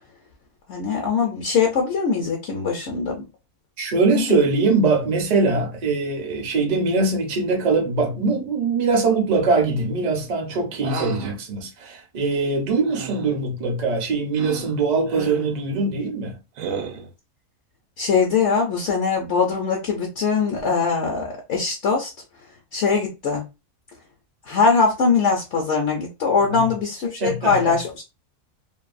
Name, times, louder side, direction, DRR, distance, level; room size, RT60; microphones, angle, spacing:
voice 1, 0.7-3.2 4.1-4.4 18.0-22.1 22.7-23.4 24.5-28.0, left 5 dB, 65° left, 0.8 m, -22 dB
voice 2, 3.8-16.4 26.5-26.7 27.2-27.7, right 3 dB, 45° right, 0.5 m, -22 dB
sound 1, 10.8-11.3 12.9-13.4 14.3-14.7 15.1-15.5 16.6-17.1, right 5 dB, 70° right, 1.1 m, -32 dB
2.6 x 2.3 x 2.4 m
omnidirectional pair, 1.5 m